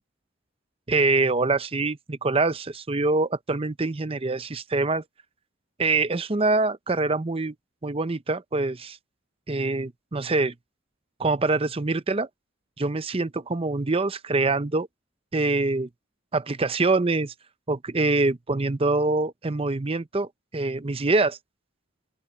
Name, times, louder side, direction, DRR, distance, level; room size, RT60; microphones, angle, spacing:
voice 1, 0.9-5.0 5.8-7.5 7.8-9.0 9.5-10.5 11.2-12.3 12.8-14.9 15.3-15.9 16.3-17.3 17.7-20.3 20.5-21.4, right 3 dB, 30° right, 0.7 m, -24 dB
open air
head